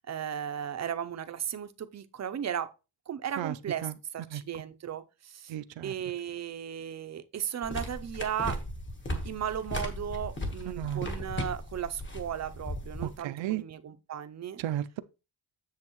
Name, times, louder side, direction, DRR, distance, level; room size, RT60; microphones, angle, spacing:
voice 1, 0.1-2.7 3.1-5.6 5.8-8.6 9.2-14.6, right 9 dB, 40° right, 0.5 m, -36 dB
voice 2, 5.5-5.9 10.7-11.1 13.0-13.6 14.6-15.0, right 13 dB, 85° right, 0.6 m, -34 dB
sound 1, 7.6-13.2, equal, 25° left, 1.2 m, -37 dB
7.7 x 7.1 x 3.0 m
wide cardioid pair, 180°, 44 cm